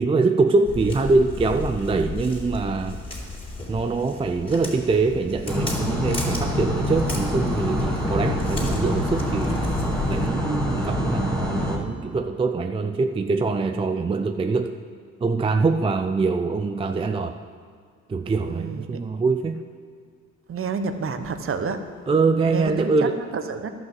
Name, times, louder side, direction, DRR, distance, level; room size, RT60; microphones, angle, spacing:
voice 1, 0.0-3.0 3.7-9.7 10.1-14.7 15.2-17.4 18.1-19.6 22.1-23.2, right 3 dB, 20° right, 7 dB, 0.4 m, -23 dB
Walk footsteps, 0.7-10.3, left 2 dB, 20° left, 3.2 m, -34 dB
sound 1, 5.5-11.8, left 1 dB, 5° left, 1.7 m, -25 dB
voice 2, 18.5-19.0 20.5-21.8 22.5-23.7, right 5 dB, 45° right, 8 dB, 1.0 m, -29 dB
11.5 x 6.0 x 7.5 m, 2.1 s
cardioid pair, 90°, 30 cm